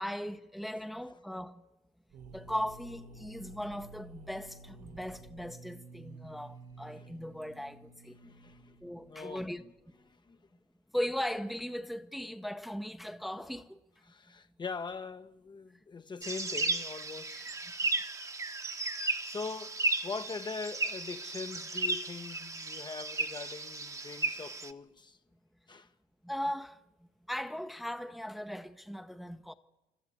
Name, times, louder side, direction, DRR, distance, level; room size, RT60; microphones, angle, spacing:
voice 1, 0.0-1.6 2.3-8.1 8.8-9.6 10.9-13.8 17.3-17.5 26.2-26.8 27.3-29.5, equal, ahead, 0.9 m, -38 dB
voice 2, 0.7-1.2 6.9-7.1 8.1-8.7 9.1-9.7 10.0-10.4 14.1-17.6 18.9-25.2 25.7-25.9, left 4 dB, 25° left, 1.0 m, -42 dB
sound 1, 2.1-9.8, right 2 dB, 50° right, 1.3 m, -52 dB
sound 2, 16.2-24.7, right 2 dB, 20° right, 1.2 m, -35 dB
27.5 x 13.0 x 9.7 m
cardioid pair, 110°, 17 cm